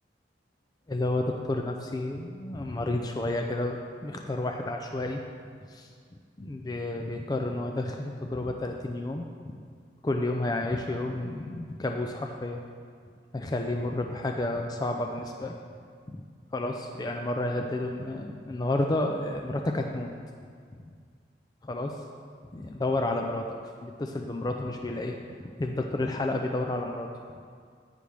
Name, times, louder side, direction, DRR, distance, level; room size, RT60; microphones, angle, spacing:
voice 1, 0.9-3.8 4.0-5.2 5.7-5.9 6.4-9.2 10.0-12.6 13.3-15.6 16.1-16.2 16.5-20.1 21.6-22.0 22.5-23.5 23.8-27.1, left 2 dB, 20° left, 3 dB, 0.4 m, -31 dB
10.0 x 9.4 x 3.4 m, 2.1 s
head